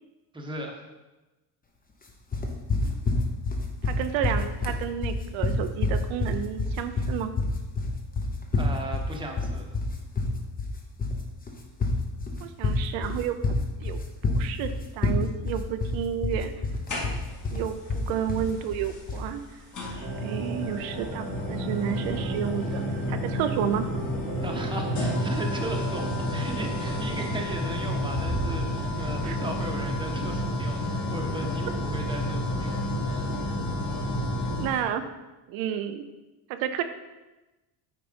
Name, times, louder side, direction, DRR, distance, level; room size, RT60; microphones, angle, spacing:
voice 1, 0.3-0.8 8.6-9.8 24.4-33.3, right 2 dB, 10° right, 1 dB, 1.1 m, -37 dB
sound 1, 2.3-19.3, left 3 dB, 20° left, 1.0 m, -27 dB
voice 2, 3.8-7.3 12.4-13.5 13.8-16.5 17.5-19.4 20.2-22.8 23.1-23.9 29.2-29.4 34.6-35.1 35.5-36.0 36.5-36.8, right 9 dB, 80° right, 8 dB, 0.8 m, -31 dB
sound 2, 16.9-17.5 18.9-19.0 19.7-34.8, left 1 dB, 40° left, 2.4 m, -30 dB
sound 3, 20.0-27.3, right 6 dB, 35° right, 1.2 m, -39 dB
9.0 x 4.2 x 5.1 m, 1.1 s
cardioid pair, 135°, 45 cm